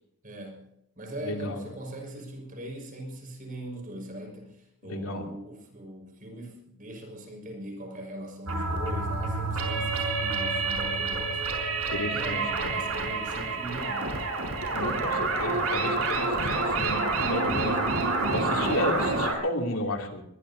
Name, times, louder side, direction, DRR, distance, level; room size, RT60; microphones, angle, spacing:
voice 1, 0.2-0.6 1.0-11.4 12.0-14.2 18.2-18.8, right 1 dB, 40° right, 1 dB, 5.7 m, -40 dB
voice 2, 1.2-1.6 4.8-5.3 11.9-12.7 14.7-20.2, left 1 dB, 75° left, 1 dB, 2.9 m, -33 dB
sound 1, 8.5-19.3, right 3 dB, 85° right, 5.1 m, -28 dB
22.0 x 21.0 x 2.8 m, 0.78 s
head